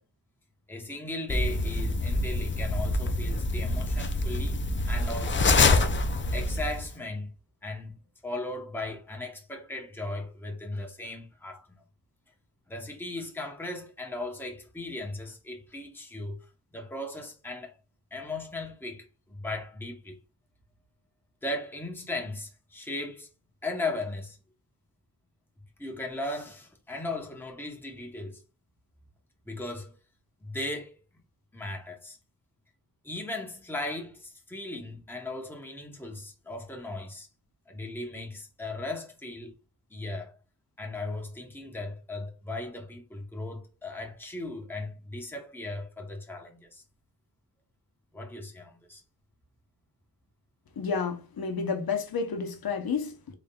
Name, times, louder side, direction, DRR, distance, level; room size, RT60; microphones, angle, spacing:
voice 1, 0.7-5.9 6.3-7.3 7.6-7.9 8.2-11.8 12.7-16.4 16.7-17.7 18.1-20.2 21.4-23.3 23.6-24.4 25.8-28.4 29.5-29.9 30.4-30.9 31.5-32.2 33.0-37.3 37.7-39.5 39.9-40.3 40.8-46.8 48.1-49.0, left 2 dB, 5° left, 0.8 m, -37 dB
sound 1, 1.3-6.9, left 2 dB, 30° left, 0.4 m, -26 dB
voice 2, 50.8-53.3, left 5 dB, 60° left, 0.8 m, -31 dB
3.9 x 3.5 x 2.3 m
wide cardioid pair, 130°, 40 cm